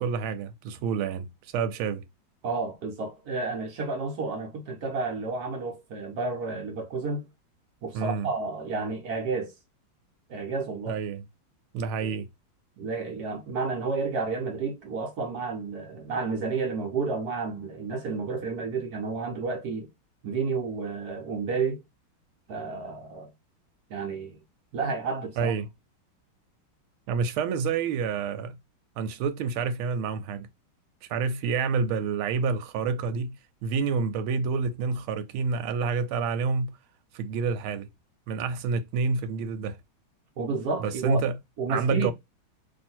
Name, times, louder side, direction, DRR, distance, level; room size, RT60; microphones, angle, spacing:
voice 1, 0.0-2.0 7.9-8.3 10.9-11.2 11.7-12.3 25.4-25.7 27.1-28.6 29.0-30.5 31.0-33.4 33.6-36.7 37.1-37.9 38.3-39.8 40.8-41.4 41.7-42.1, right 5 dB, 85° right, 1.4 m, -28 dB
voice 2, 2.4-7.2 7.8-9.5 10.3-11.0 12.0-12.1 12.8-19.9 20.2-21.8 22.5-23.3 23.9-24.4 24.7-25.5 40.4-41.2 41.6-42.1, right 4 dB, 60° right, 1.1 m, -31 dB
3.0 x 2.7 x 4.2 m
omnidirectional pair, 2.2 m